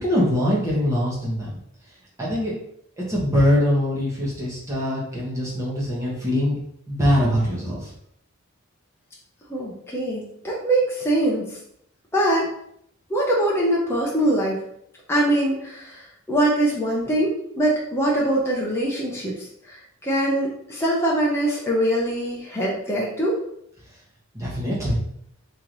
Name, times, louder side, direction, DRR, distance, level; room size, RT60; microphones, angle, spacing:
voice 1, 0.0-1.6 2.2-2.5 3.0-6.5 6.9-7.9 24.3-25.0, left 1 dB, 15° right, -6 dB, 1.0 m, -23 dB
voice 2, 9.5-11.6 12.1-12.5 13.1-14.6 15.1-19.3 19.7-23.4, right 1 dB, 10° left, -4 dB, 0.6 m, -23 dB
3.1 x 2.9 x 3.8 m, 0.71 s
head